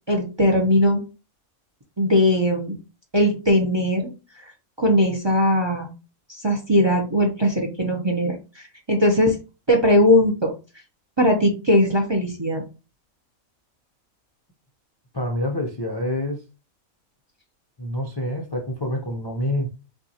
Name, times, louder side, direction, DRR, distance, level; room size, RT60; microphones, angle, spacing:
voice 1, 0.1-1.0 2.0-2.8 3.1-4.1 4.8-5.9 6.3-9.4 9.7-10.5 11.2-12.6, left 1 dB, 25° right, 0.6 m, -19 dB
voice 2, 15.1-16.4 17.8-19.7, left 1 dB, 30° left, 0.5 m, -27 dB
5.6 x 2.5 x 2.8 m
omnidirectional pair, 1.5 m